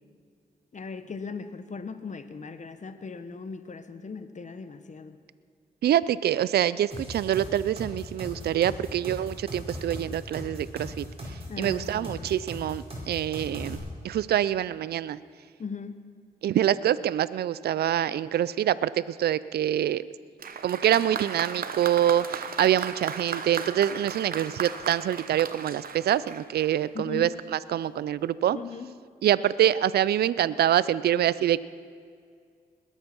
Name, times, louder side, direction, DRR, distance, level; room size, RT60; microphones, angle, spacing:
voice 1, 0.7-5.2 11.5-12.3 15.6-16.0 26.9-27.3 28.5-28.9, left 5 dB, 50° left, 11 dB, 1.1 m, -38 dB
voice 2, 5.8-11.0 11.6-13.8 14.0-15.2 16.4-20.1 20.6-28.6 29.2-31.6, right 11 dB, 85° right, 18 dB, 0.4 m, -25 dB
sound 1, 6.9-13.8, equal, 35° right, 4.8 m, -38 dB
Applause, 20.4-26.9 27.8-27.9, right 6 dB, 65° right, 1.0 m, -36 dB
20.5 x 9.0 x 6.0 m, 2.1 s
cardioid pair, 65°, 16 cm